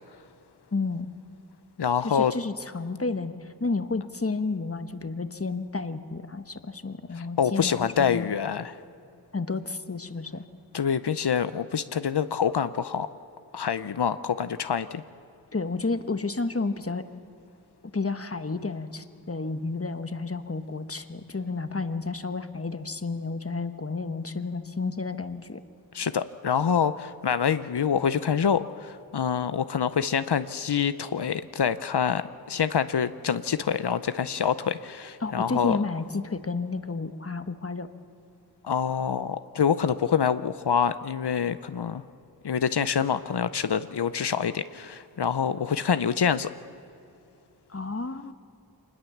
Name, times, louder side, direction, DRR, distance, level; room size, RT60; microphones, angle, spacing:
voice 1, 0.7-1.1 2.0-8.3 9.3-10.4 15.5-17.0 17.9-25.6 35.2-37.9 47.7-48.3, left 3 dB, 35° left, 10 dB, 1.2 m, -31 dB
voice 2, 1.8-2.3 7.4-8.7 10.7-13.1 13.5-15.0 25.9-35.8 38.6-42.0 42.4-46.5, left 7 dB, 90° left, 12 dB, 0.6 m, -26 dB
25.0 x 20.5 x 7.2 m, 2.6 s
wide cardioid pair, 45°, 39 cm